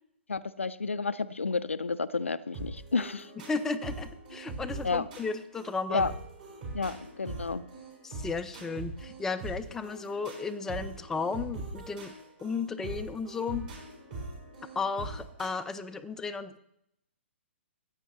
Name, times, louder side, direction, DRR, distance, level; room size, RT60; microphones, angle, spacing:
voice 1, 0.3-3.3 4.8-5.1 5.9-6.1 6.7-7.6, left 4 dB, 75° left, 15 dB, 0.4 m, -31 dB
sound 1, 2.5-15.5, right 2 dB, 45° right, 4.3 m, -42 dB
voice 2, 3.5-6.1 8.0-12.1 12.4-13.7 14.7-16.6, left 4 dB, 5° left, 8 dB, 0.3 m, -34 dB
14.5 x 8.1 x 3.0 m, 0.76 s
figure-of-eight pair, 120°, 7 cm